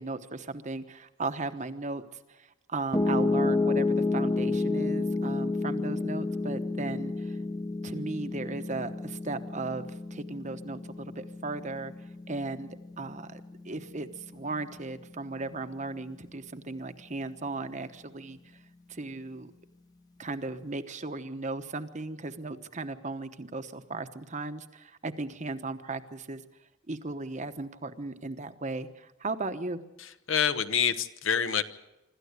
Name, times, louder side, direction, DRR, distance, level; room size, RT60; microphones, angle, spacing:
voice 1, 0.0-2.0 2.3-7.4 7.8-11.9 12.3-18.4 18.9-19.5 20.2-26.4 26.9-29.8, right 3 dB, 35° right, 9 dB, 1.0 m, -36 dB
Piano, 2.9-15.1, left 3 dB, 20° left, 0.8 m, -30 dB
voice 2, 30.0-31.6, left 7 dB, 65° left, 11 dB, 1.0 m, -27 dB
25.5 x 13.0 x 8.2 m, 0.95 s
head